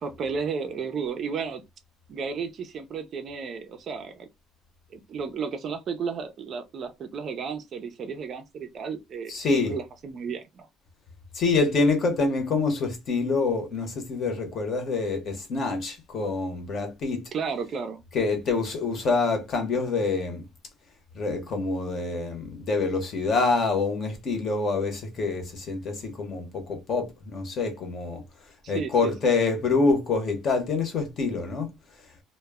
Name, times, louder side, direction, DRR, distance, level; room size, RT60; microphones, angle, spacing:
voice 1, 0.0-1.6 2.1-4.3 4.9-10.7 17.3-18.0 28.6-29.3, right 6 dB, 40° right, 0.4 m, -33 dB
voice 2, 9.3-9.7 11.3-17.3 18.1-20.4 21.1-28.2 28.7-31.7, left 4 dB, 40° left, 0.7 m, -26 dB
2.0 x 2.0 x 3.4 m
cardioid pair, 150°, 0 cm